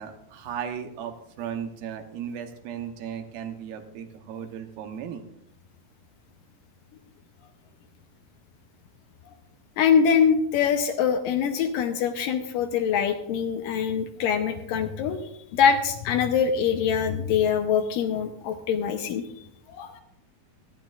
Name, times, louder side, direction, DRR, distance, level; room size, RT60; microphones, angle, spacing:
voice 1, 0.0-5.3, right 8 dB, 80° right, 6 dB, 2.9 m, -36 dB
voice 2, 9.8-15.2 15.5-19.3 19.7-20.0, left 7 dB, 75° left, 7 dB, 2.3 m, -24 dB
23.0 x 10.0 x 2.5 m, 0.79 s
omnidirectional pair, 4.3 m